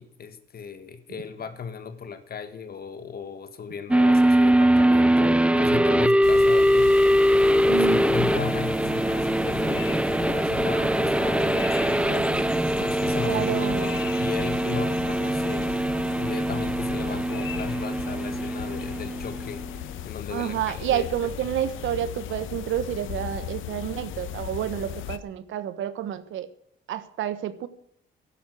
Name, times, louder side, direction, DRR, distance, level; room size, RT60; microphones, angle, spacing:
voice 1, 0.0-6.9 7.7-12.3 12.8-15.8 16.2-19.6 20.0-21.3, left 6 dB, 50° left, 10 dB, 1.7 m, -36 dB
sound 1, 3.9-19.6, right 1 dB, 5° right, 0.6 m, -22 dB
sound 2, 6.2-25.2, left 12 dB, 85° left, 0.9 m, -37 dB
voice 2, 7.7-8.0 13.2-13.9 20.3-26.5 26.9-27.7, right 11 dB, 75° right, 14 dB, 1.2 m, -29 dB
15.0 x 11.5 x 6.4 m, 0.69 s
cardioid pair, 90°, 20 cm